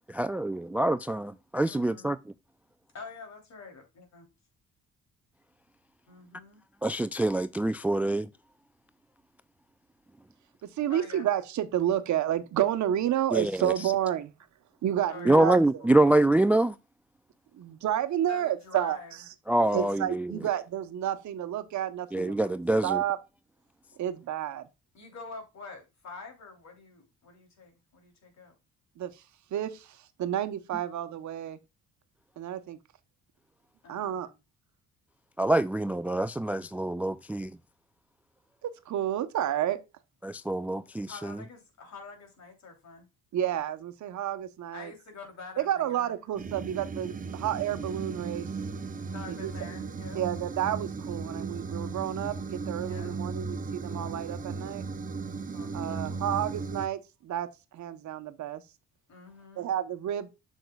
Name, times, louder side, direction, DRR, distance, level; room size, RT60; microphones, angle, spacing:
voice 1, 0.1-2.2 6.8-8.3 13.3-13.7 15.3-16.8 19.5-20.3 22.1-23.0 35.4-37.5 40.2-41.4, right 1 dB, 5° right, 0.3 m, -25 dB
voice 2, 1.7-2.1 2.9-4.3 6.1-6.6 10.9-11.3 15.1-16.1 18.3-19.1 24.9-28.5 33.8-34.4 41.1-43.1 44.7-46.1 49.1-50.2 52.9-53.2 55.3-56.2 59.1-59.7, left 4 dB, 65° left, 3.2 m, -46 dB
voice 3, 10.6-14.3 14.8-15.6 17.5-19.0 19.7-22.5 22.8-23.2 24.0-24.6 29.0-29.2 29.5-31.6 32.4-32.8 33.9-34.3 38.6-39.8 43.3-44.9 45.6-48.5 49.4-49.5 50.1-54.8 55.7-58.6 59.6-60.3, right 11 dB, 70° right, 1.0 m, -30 dB
sound 1, 46.4-56.9, right 4 dB, 25° right, 0.8 m, -36 dB
7.9 x 6.3 x 2.3 m
cardioid pair, 90°, 30 cm